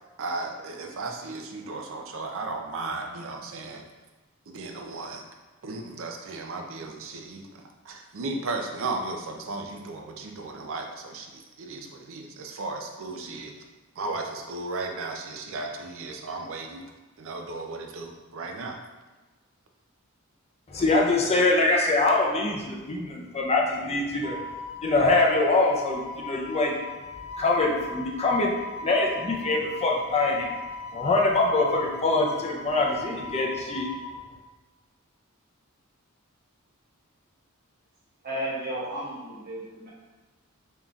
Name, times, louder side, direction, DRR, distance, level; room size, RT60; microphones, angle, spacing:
voice 1, 0.2-3.8 4.5-5.2 5.6-13.6 14.0-16.8 17.2-18.8, right 3 dB, 65° right, 3 dB, 0.5 m, -35 dB
voice 2, 20.7-24.4 24.8-26.7 27.4-28.5 28.8-30.5 30.9-33.9, left 2 dB, 30° left, -1 dB, 0.5 m, -24 dB
Wind instrument woodwind instrument, 24.2-34.1, left 4 dB, 85° left, 0.4 m, -38 dB
voice 3, 38.2-39.9, right 1 dB, 45° right, -8 dB, 1.3 m, -33 dB
4.0 x 3.5 x 2.3 m, 1.2 s
head